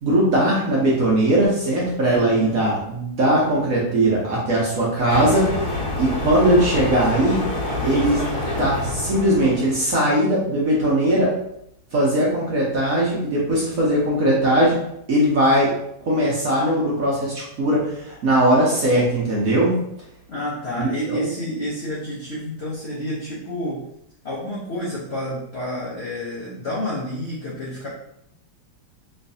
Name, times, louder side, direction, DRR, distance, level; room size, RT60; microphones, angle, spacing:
voice 1, 0.0-5.7 6.0-7.5 7.8-8.2 8.6-11.3 11.9-14.8 15.1-15.7 16.1-19.8 20.8-21.3, right 1 dB, 60° right, -5 dB, 0.9 m, -19 dB
voice 2, 2.2-2.6 20.3-23.8 24.2-27.9, left 1 dB, 85° left, -7 dB, 0.5 m, -29 dB
sound 1, 5.1-9.9, left 1 dB, 50° left, 1.1 m, -27 dB
3.2 x 3.1 x 2.6 m, 0.76 s
omnidirectional pair, 2.3 m